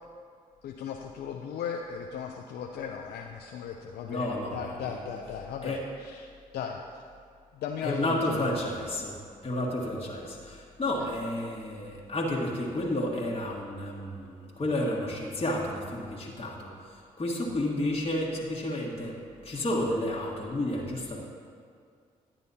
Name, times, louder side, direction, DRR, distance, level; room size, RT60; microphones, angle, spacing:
voice 1, 0.6-6.3 6.5-6.8 7.5-8.5 11.0-11.1, left 7 dB, 70° left, 2 dB, 0.5 m, -37 dB
voice 2, 4.1-5.0 5.6-5.8 7.8-9.2 9.4-19.2 19.4-21.2, left 1 dB, 35° left, -4 dB, 1.6 m, -31 dB
11.0 x 8.7 x 2.8 m, 2.1 s
hypercardioid pair, 45°, 17 cm